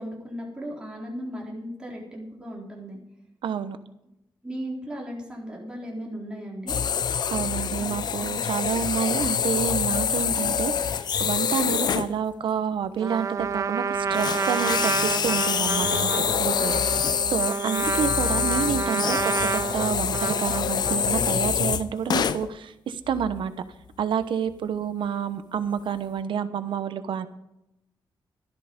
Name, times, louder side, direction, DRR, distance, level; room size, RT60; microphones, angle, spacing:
voice 1, 0.0-3.0 4.4-6.8, equal, 10° right, -2 dB, 3.8 m, -36 dB
voice 2, 3.4-3.8 7.3-23.5 24.0-27.3, right 7 dB, 85° right, 11 dB, 1.0 m, -29 dB
sound 1, 6.7-12.1 13.4-13.6 14.1-22.5 23.1-23.4 24.0-24.1 24.5-24.6, left 7 dB, 60° left, 0.5 m, -26 dB
Trumpet, 13.0-21.1, right 6 dB, 40° right, 0.4 m, -29 dB
13.0 x 11.5 x 5.3 m, 0.87 s
wide cardioid pair, 150°, 8 cm